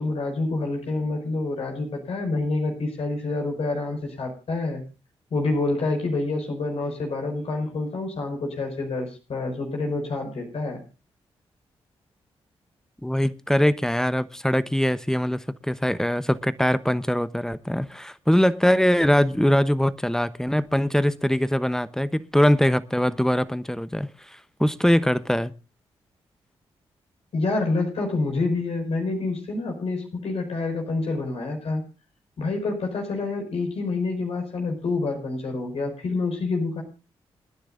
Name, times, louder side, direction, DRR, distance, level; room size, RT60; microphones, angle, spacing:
voice 1, 0.0-4.8 5.3-10.8 27.3-31.8 32.4-36.8, left 3 dB, 65° left, 5.6 m, -27 dB
voice 2, 13.0-25.5, equal, 5° left, 1.0 m, -22 dB
28.0 x 10.0 x 2.6 m
supercardioid pair, 50°, 11 cm